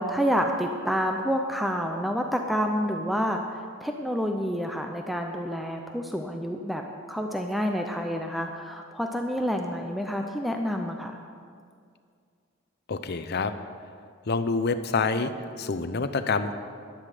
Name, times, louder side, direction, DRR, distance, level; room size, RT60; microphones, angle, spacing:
voice 1, 0.0-6.8 7.1-11.2, equal, ahead, 3 dB, 0.5 m, -28 dB
voice 2, 12.9-13.5 14.3-15.3 15.6-16.5, left 4 dB, 50° left, 10 dB, 0.7 m, -27 dB
13.5 x 10.5 x 5.0 m, 2.2 s
head